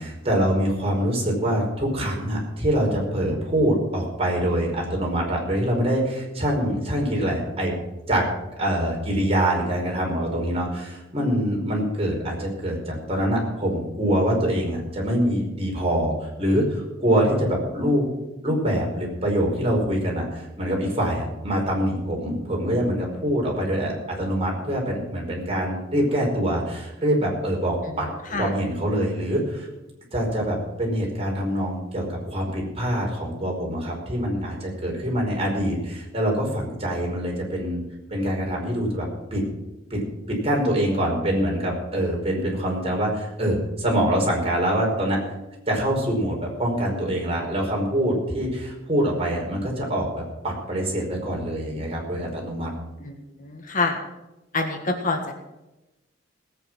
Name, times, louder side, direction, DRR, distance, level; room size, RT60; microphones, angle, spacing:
voice 1, 0.0-7.7 8.1-8.3 8.6-18.1 18.4-29.7 30.1-37.8 38.1-39.1 39.3-39.4 39.9-40.0 40.3-45.2 45.7-52.7, equal, 30° right, -1 dB, 5.0 m, -24 dB
voice 2, 53.4-54.0 54.5-55.3, left 3 dB, 45° left, 5 dB, 1.7 m, -26 dB
18.5 x 9.1 x 6.1 m, 0.98 s
head